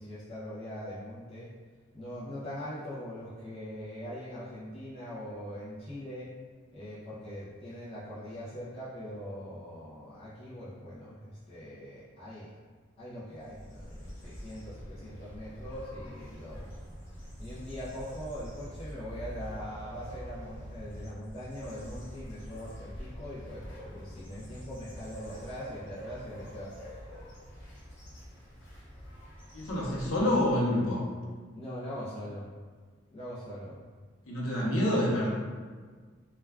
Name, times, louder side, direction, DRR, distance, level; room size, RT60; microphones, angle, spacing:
voice 1, 0.0-1.5 1.9-6.3 6.7-12.5 13.0-16.7 17.4-27.0 31.5-32.5 33.1-33.8, equal, 30° left, -11 dB, 0.5 m, -42 dB
sound 1, 13.4-30.7, equal, 55° left, 1.0 m, -45 dB
voice 2, 29.5-31.0 34.3-35.3, left 1 dB, 85° left, -4 dB, 0.7 m, -27 dB
2.2 x 2.2 x 3.4 m, 1.5 s
head